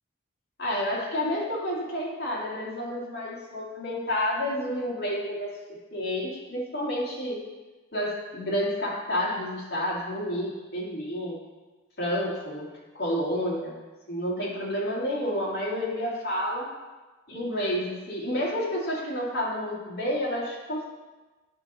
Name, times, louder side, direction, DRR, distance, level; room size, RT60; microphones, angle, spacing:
voice 1, 0.6-5.6 5.9-7.4 7.9-11.4 12.0-12.7 12.9-13.8 14.1-16.7 17.3-20.8, equal, 50° left, -4 dB, 2.2 m, -30 dB
10.0 x 5.4 x 4.2 m, 1.2 s
head